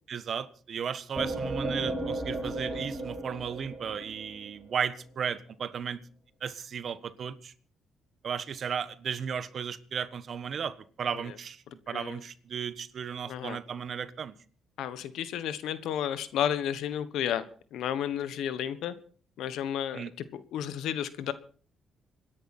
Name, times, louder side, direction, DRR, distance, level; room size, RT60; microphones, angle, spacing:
voice 1, 0.1-6.0 6.4-7.5 8.2-14.3 19.9-20.1, right 7 dB, 55° right, 1.3 m, -35 dB
sound 1, 1.2-4.8, right 2 dB, 15° right, 6.2 m, -34 dB
voice 2, 13.3-13.6 14.8-17.4 17.7-18.9 19.4-21.3, left 10 dB, 85° left, 1.3 m, -32 dB
26.5 x 10.5 x 4.3 m
cardioid pair, 90°, 0 cm